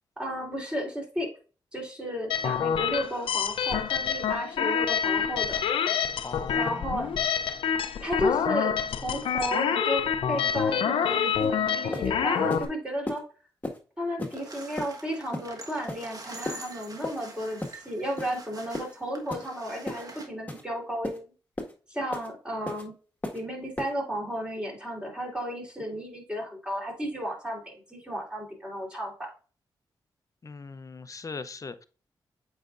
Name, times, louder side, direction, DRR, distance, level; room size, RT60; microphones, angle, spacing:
voice 1, 0.2-1.3 1.7-5.6 6.5-7.1 8.0-8.8 9.0-13.2 14.0-21.3 21.9-22.9 23.3-29.3, equal, 10° right, -1 dB, 3.4 m, -33 dB
sound 1, 2.3-12.7, left 7 dB, 80° left, 0.5 m, -27 dB
voice 2, 6.2-7.2 30.4-31.9, left 4 dB, 40° left, 13 dB, 0.7 m, -40 dB
sound 2, 11.4-11.5 11.9-12.1 12.5-12.7 13.1-13.2 13.6-13.8 14.2-14.4 14.8-14.9 15.3-15.5 15.9-16.1 16.5-16.6 17.0-17.2 17.6-17.8 18.2-18.4 18.7-18.9 19.3-19.5 19.9-20.0 20.5-20.6 21.0-21.2 21.6-21.7 22.1-22.3 22.7-22.8 23.2-23.4 23.8-23.9, left 1 dB, 20° left, 1.6 m, -34 dB
sound 3, 14.3-20.3, right 2 dB, 40° right, 1.4 m, -45 dB
7.9 x 4.9 x 2.5 m, 0.37 s
cardioid pair, 55°, 9 cm